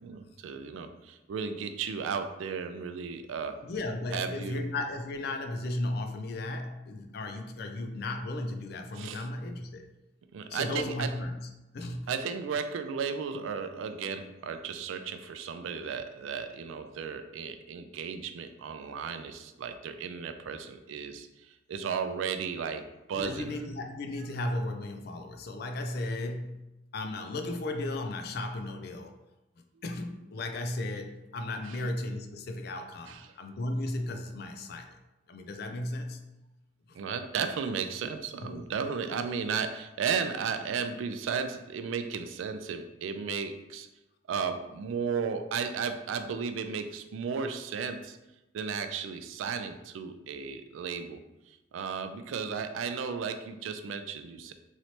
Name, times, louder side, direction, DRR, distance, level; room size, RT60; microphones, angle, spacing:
voice 1, 0.0-3.6 4.1-4.6 9.0-9.2 10.3-11.1 12.1-21.3 21.7-23.5 31.6-31.8 33.0-33.2 37.0-43.9 44.3-48.2 48.5-51.2 51.7-54.5, right 6 dB, 85° right, 8 dB, 0.3 m, -34 dB
voice 2, 3.6-9.8 10.5-11.5 11.7-12.1 23.1-29.1 29.8-35.0 35.3-36.3 38.4-38.7, left 2 dB, 55° left, 5 dB, 0.3 m, -35 dB
3.1 x 2.8 x 2.8 m, 0.97 s
head